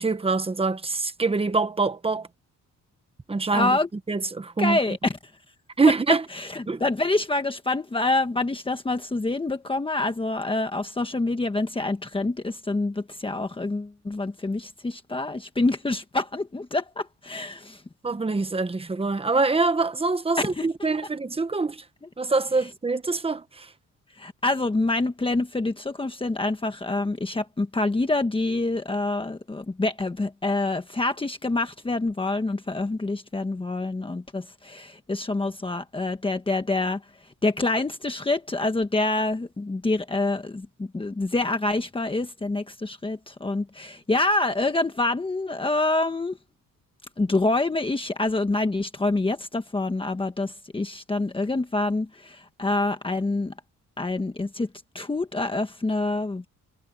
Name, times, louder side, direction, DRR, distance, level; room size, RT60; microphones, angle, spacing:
voice 1, 0.0-2.3 3.3-3.8 4.1-4.8 5.8-6.2 6.7-6.8 18.0-21.8 22.2-23.7, right 3 dB, 20° right, 1.2 m, -24 dB
voice 2, 3.5-3.9 4.6-5.0 6.3-17.8 20.4-20.7 24.2-37.0 37.4-46.4 47.2-53.5 54.0-54.7 54.9-56.5, left 2 dB, 15° left, 1.4 m, -26 dB
wide cardioid pair, 150°, 31 cm